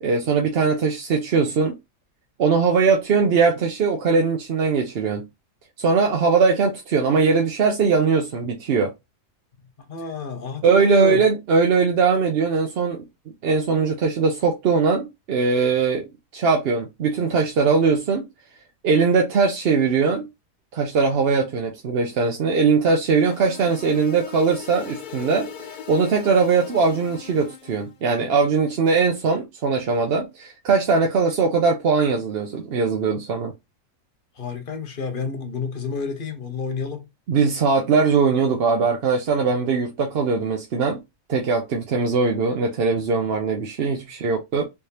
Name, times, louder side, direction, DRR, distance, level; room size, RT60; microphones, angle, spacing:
voice 1, 0.0-1.7 2.4-5.3 5.8-8.9 10.6-13.0 13.4-16.1 16.3-18.3 18.8-20.3 20.7-33.5 37.3-41.0 41.3-44.7, right 5 dB, 55° right, 0.8 m, -20 dB
voice 2, 9.8-11.2 34.4-37.1, left 4 dB, 45° left, 0.8 m, -29 dB
sound 1, 23.1-27.9, left 8 dB, 70° left, 0.4 m, -40 dB
3.4 x 3.3 x 2.8 m
omnidirectional pair, 1.5 m